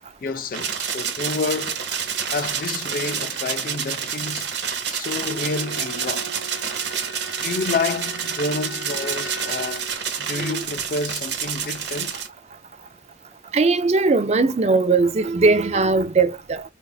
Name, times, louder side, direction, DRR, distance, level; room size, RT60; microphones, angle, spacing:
voice 1, 0.2-1.9 2.3-4.5 4.9-6.3 7.4-9.9 10.2-12.2, left 4 dB, 50° left, 0.4 m, -29 dB
sound 1, 0.5-12.3, right 7 dB, 75° right, 1.1 m, -28 dB
Bowed string instrument, 5.2-10.0, right 1 dB, 75° left, 1.6 m, -38 dB
voice 2, 13.5-16.6, right 3 dB, 35° right, 0.4 m, -19 dB
4.5 x 2.5 x 2.3 m
head